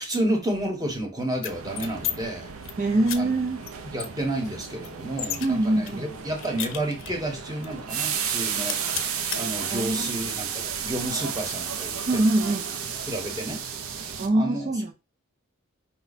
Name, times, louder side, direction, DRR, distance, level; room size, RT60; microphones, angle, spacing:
voice 1, 0.0-2.5 3.2-3.3 3.8-12.5 13.0-13.6 13.9-14.7, right 1 dB, 20° right, 1.0 m, -31 dB
sound 1, 1.3-2.1 2.5-2.7 3.1-3.2 3.6-3.7 4.0-5.5 5.9-7.3 7.6-7.7 8.0-8.3 8.6-9.4, left 10 dB, 65° left, 0.6 m, -33 dB
sound 2, 1.5-14.3, right 7 dB, 80° right, 0.6 m, -33 dB
voice 2, 2.8-3.6 5.4-6.0 9.7-10.2 12.1-12.6 14.2-14.9, right 2 dB, 35° right, 0.4 m, -23 dB
5.1 x 2.2 x 4.0 m
head